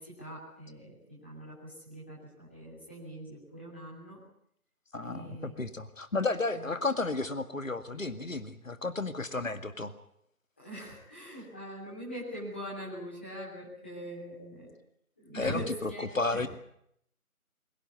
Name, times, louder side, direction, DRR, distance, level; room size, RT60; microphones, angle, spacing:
voice 1, 0.0-4.2 5.0-5.6 6.5-6.7 10.6-14.8 15.2-16.0 16.3-16.5, equal, 10° left, -7 dB, 3.3 m, -42 dB
voice 2, 4.9-9.9 15.3-16.5, left 3 dB, 60° left, 10 dB, 2.1 m, -33 dB
23.0 x 18.0 x 9.5 m, 0.71 s
figure-of-eight pair, 170°, 44 cm